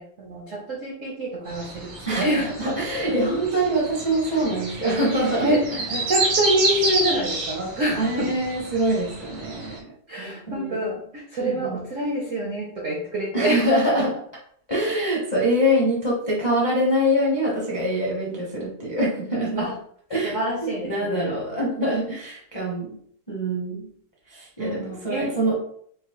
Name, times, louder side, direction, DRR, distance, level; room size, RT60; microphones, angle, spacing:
voice 1, 0.0-2.7 3.1-3.3 4.3-4.4 4.9-8.3 10.1-13.7 13.9-14.0 19.6-19.7 20.2-21.6 24.6-25.4, right 1 dB, 70° right, -2 dB, 0.7 m, -27 dB
sound 1, 1.5-9.8, right 2 dB, 85° right, 1.9 m, -29 dB
voice 2, 2.1-5.5 7.9-9.9 10.2-10.8 11.4-11.8 13.3-14.2 14.7-19.7 20.1-23.0 23.3-23.9 24.3-25.5, equal, 30° left, -4 dB, 0.4 m, -24 dB
4.5 x 2.6 x 2.9 m, 0.62 s
omnidirectional pair, 2.3 m